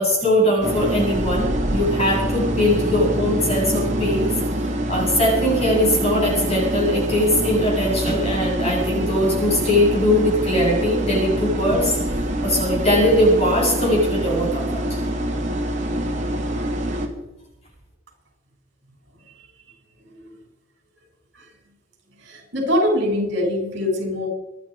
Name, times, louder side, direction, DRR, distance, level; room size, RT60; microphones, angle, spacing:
voice 1, 0.0-4.3 4.6-12.0 12.4-15.0, left 1 dB, 30° left, -2 dB, 7.9 m, -20 dB
sound 1, 0.6-17.1, right 1 dB, 35° right, 2.8 m, -25 dB
voice 2, 22.2-24.3, left 1 dB, 60° right, 2 dB, 7.3 m, -23 dB
26.5 x 10.5 x 5.2 m, 0.95 s
head